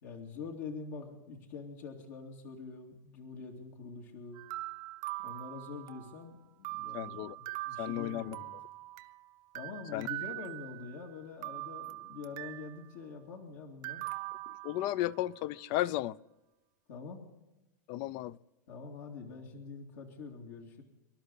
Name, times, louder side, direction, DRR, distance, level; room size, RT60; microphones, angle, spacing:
voice 1, 0.0-4.4 5.2-8.5 9.5-14.1 16.9-17.3 18.7-20.8, left 4 dB, 70° left, 2.6 m, -45 dB
sound 1, 4.4-6.2 6.6-9.2 9.6-11.0 11.4-12.8 13.8-15.3, right 20 dB, 45° right, 0.7 m, -42 dB
voice 2, 6.9-7.3 7.8-8.4 9.9-10.1 14.6-16.2 17.9-18.4, left 15 dB, 45° left, 0.5 m, -34 dB
26.0 x 11.5 x 4.1 m
supercardioid pair, 130°, 10 cm